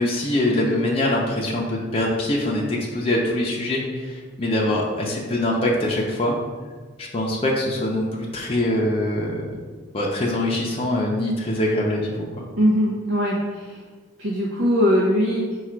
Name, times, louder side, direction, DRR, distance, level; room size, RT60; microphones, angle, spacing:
voice 1, 0.0-6.4 7.0-9.4 9.9-12.4, left 1 dB, 30° left, -3 dB, 0.5 m, -23 dB
voice 2, 12.6-13.8 14.2-15.5, equal, 75° right, -4 dB, 0.6 m, -21 dB
4.8 x 2.3 x 4.4 m, 1.4 s
head